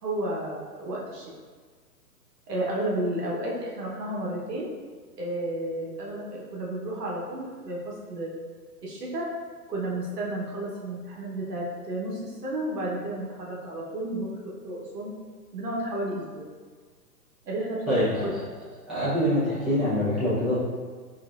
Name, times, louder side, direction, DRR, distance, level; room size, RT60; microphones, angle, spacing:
voice 1, 0.0-1.3 2.5-4.7 5.2-8.3 8.8-9.3 9.7-15.1 15.5-16.5 17.4-18.1, right 1 dB, 75° right, -3 dB, 1.2 m, -32 dB
voice 2, 17.9-18.4 18.9-20.6, equal, ahead, -14 dB, 0.8 m, -25 dB
4.6 x 2.7 x 2.5 m, 1.5 s
hypercardioid pair, 135°, 48 cm